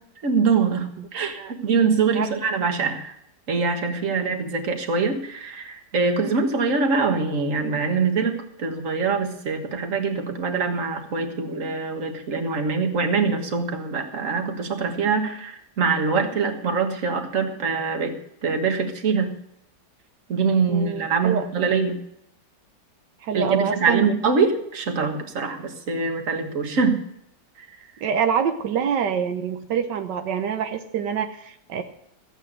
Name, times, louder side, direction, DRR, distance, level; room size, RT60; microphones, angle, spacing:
voice 1, 0.2-3.2 3.5-19.4 20.3-22.0 23.3-27.0 27.6-27.9, right 4 dB, 50° right, 5 dB, 1.8 m, -24 dB
voice 2, 20.7-21.5 23.2-24.1 28.0-31.8, right 7 dB, 85° right, 6 dB, 1.6 m, -26 dB
14.5 x 8.8 x 6.5 m, 0.75 s
omnidirectional pair, 1.8 m